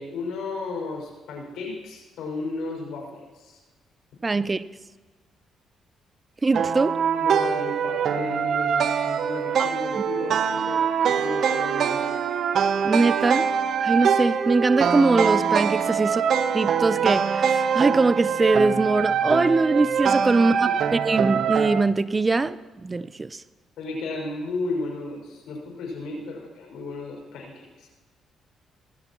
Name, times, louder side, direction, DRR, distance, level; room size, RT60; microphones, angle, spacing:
voice 1, 0.0-3.6 7.2-12.2 20.4-20.7 23.8-27.9, left 3 dB, 85° left, 0 dB, 5.9 m, -34 dB
voice 2, 4.2-4.6 6.4-7.0 9.6-9.7 10.0-10.1 12.8-13.5 13.8-16.2 16.5-23.4, right 3 dB, 25° right, 15 dB, 0.5 m, -22 dB
sound 1, 6.5-21.8, right 7 dB, 65° right, 0.8 m, -23 dB
20.0 x 15.0 x 3.0 m, 1.3 s
cardioid pair, 90°, 0 cm